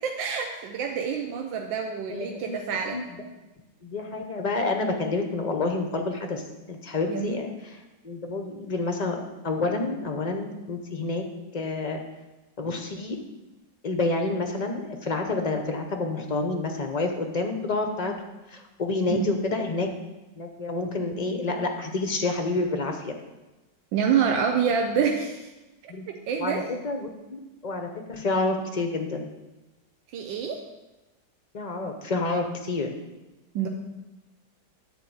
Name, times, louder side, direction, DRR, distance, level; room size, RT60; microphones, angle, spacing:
voice 1, 0.0-3.0 7.1-7.3 19.1-19.3 23.9-25.5 25.8-25.9 26.3-26.7 30.1-30.6 33.5-33.7, right 7 dB, 85° right, 2 dB, 1.5 m, -27 dB
voice 2, 2.1-2.6 2.9-3.0 3.8-6.4 6.7-7.8 8.0-11.2 11.5-12.0 12.6-13.2 13.8-18.1 18.5-19.9 20.4-23.1 25.9-26.0 26.4-29.3 31.5-32.9, left 3 dB, 75° left, 4 dB, 0.3 m, -28 dB
10.5 x 4.4 x 7.8 m, 1.1 s
omnidirectional pair, 2.0 m